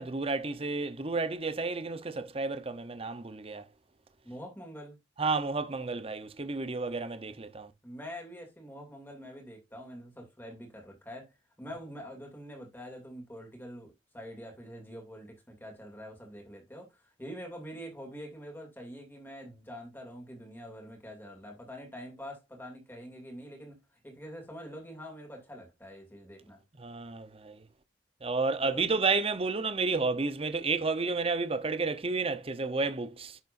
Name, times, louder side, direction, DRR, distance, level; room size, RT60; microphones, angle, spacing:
voice 1, 0.0-3.7 5.2-7.7 26.8-27.6 28.2-33.4, right 3 dB, 35° right, 0.8 m, -31 dB
voice 2, 4.2-5.0 7.8-23.8 24.0-26.6 28.5-28.9, equal, 10° left, 2.6 m, -45 dB
10.5 x 6.7 x 2.6 m
head